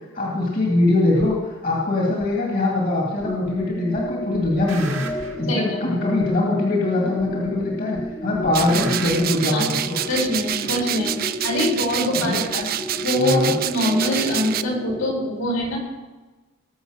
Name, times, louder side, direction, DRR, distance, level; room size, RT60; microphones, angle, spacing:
voice 1, 0.1-10.0 12.2-12.4 13.1-13.5, left 2 dB, 40° left, -3 dB, 2.4 m, -22 dB
sound 1, 1.2-1.3 2.2-2.3 3.2-3.7 3.9-5.4 6.2-6.3 7.2-7.7 7.9-9.2, right 4 dB, 75° right, 2.2 m, -37 dB
sound 2, 3.2-15.1, left 1 dB, 5° left, 1.0 m, -31 dB
sound 3, 8.5-14.6, right 12 dB, 45° right, 0.4 m, -27 dB
voice 2, 10.1-12.6 13.0-15.8, left 1 dB, 75° left, -2 dB, 4.8 m, -24 dB
19.5 x 7.3 x 6.5 m, 1.2 s
head